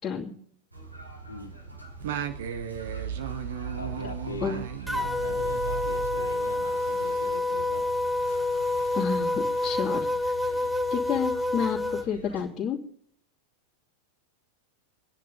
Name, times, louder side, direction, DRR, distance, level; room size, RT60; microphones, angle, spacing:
voice 1, 0.0-0.3 4.4-4.6 8.9-10.1 10.9-12.8, left 7 dB, 20° left, -6 dB, 2.9 m, -30 dB
sound 1, 0.7-12.5, right 3 dB, 90° right, 4.2 m, -45 dB
voice 2, 1.3-1.6 3.7-7.8 11.1-11.2, left 2 dB, 75° left, 1 dB, 1.7 m, -41 dB
Singing, 2.0-6.8, right 8 dB, 55° right, 1.6 m, -35 dB
sound 2, 4.9-12.1, left 2 dB, 5° right, 1.0 m, -28 dB
27.0 x 10.5 x 4.0 m, 0.64 s
figure-of-eight pair, 90°, 0 cm